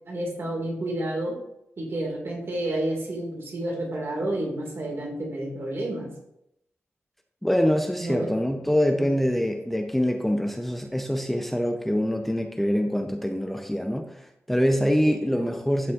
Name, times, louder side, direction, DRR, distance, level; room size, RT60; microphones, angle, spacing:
voice 1, 0.1-1.3 1.8-6.1 8.0-8.3 8.9-9.1 15.2-15.5, right 1 dB, 60° right, -1 dB, 2.0 m, -30 dB
voice 2, 7.4-14.1 14.5-15.9, equal, 5° left, 4 dB, 0.6 m, -24 dB
12.0 x 4.3 x 2.5 m, 0.80 s
cardioid pair, 80°, 5 cm